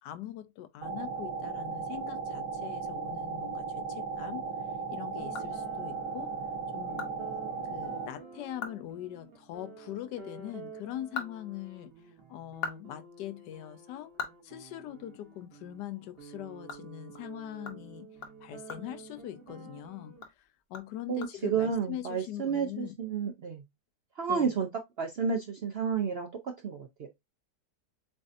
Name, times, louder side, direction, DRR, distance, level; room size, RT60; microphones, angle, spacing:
voice 1, 0.0-4.5 4.9-6.3 6.7-7.1 7.7-11.9 12.3-14.1 14.4-18.2 18.4-23.0 24.3-24.5, left 12 dB, 85° left, 1.2 m, -42 dB
sound 1, 0.8-8.1, right 5 dB, 90° right, 1.9 m, -36 dB
sound 2, 5.1-6.1 6.5-6.6 7.0-7.1 7.5-7.6 8.0-8.1 8.5-8.9 9.1-9.3 10.8-12.0 12.4-15.3 15.6-15.8 16.2-19.7 20.1-21.7, left 5 dB, 40° left, 1.0 m, -43 dB
sound 3, 5.1-20.2, right 5 dB, 40° right, 1.0 m, -50 dB
voice 2, 21.1-23.6 24.2-24.7 25.0-27.1, right 6 dB, 70° right, 0.6 m, -31 dB
7.3 x 2.6 x 2.5 m
omnidirectional pair, 1.8 m